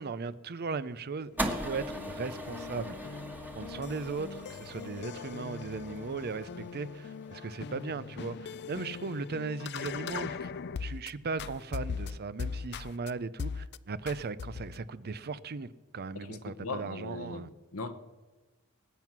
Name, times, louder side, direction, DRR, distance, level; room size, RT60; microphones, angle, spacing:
voice 1, 0.0-3.2 3.5-10.5 10.8-17.5, right 4 dB, 50° right, 0.6 m, -37 dB
sound 1, 1.3-11.1 11.4-13.1 13.4-13.8 14.1-14.8, left 5 dB, 50° left, 0.4 m, -40 dB
sound 2, 1.4-7.7, equal, 10° right, 1.4 m, -40 dB
voice 2, 16.1-17.9, left 3 dB, 90° left, 1.3 m, -39 dB
20.5 x 9.1 x 6.0 m
head